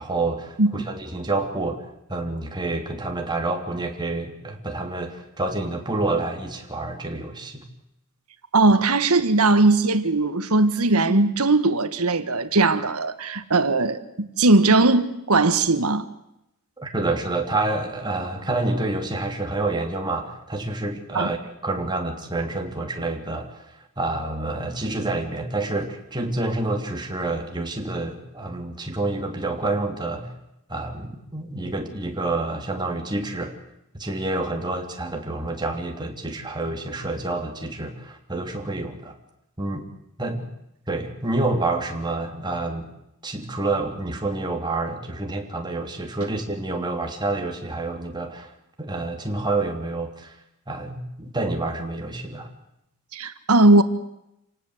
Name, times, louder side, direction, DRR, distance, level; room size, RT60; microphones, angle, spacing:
voice 1, 0.0-1.8 2.1-7.6 16.8-23.6 24.0-30.3 30.7-33.6 33.9-39.1 39.6-39.9 40.2-40.4 40.9-42.9 43.2-48.5 48.8-50.3 50.7-52.5, right 2 dB, 20° right, 3.1 m, -28 dB
voice 2, 8.5-14.0 14.4-16.1 21.1-21.3 53.1-53.8, right 2 dB, 80° right, 1.7 m, -19 dB
28.0 x 18.5 x 8.1 m
head